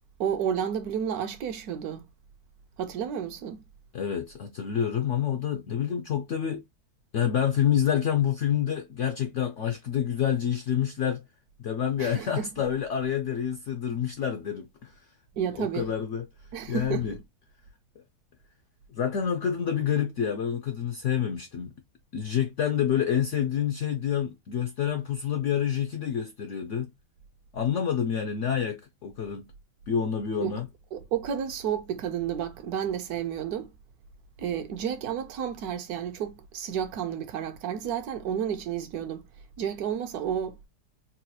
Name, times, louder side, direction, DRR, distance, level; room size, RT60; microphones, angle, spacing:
voice 1, 0.2-2.1 2.8-3.6 12.0-12.5 15.4-15.9 16.5-17.2 30.4-30.6 30.9-33.7 34.4-39.3 39.6-40.7, right 8 dB, 70° right, 1.0 m, -31 dB
voice 2, 3.9-6.6 7.1-11.2 11.6-14.9 15.6-16.2 16.7-17.2 18.9-21.7 22.1-26.9 27.5-29.5 29.9-30.7, left 9 dB, 75° left, 0.7 m, -28 dB
4.1 x 2.3 x 2.7 m
omnidirectional pair, 1.8 m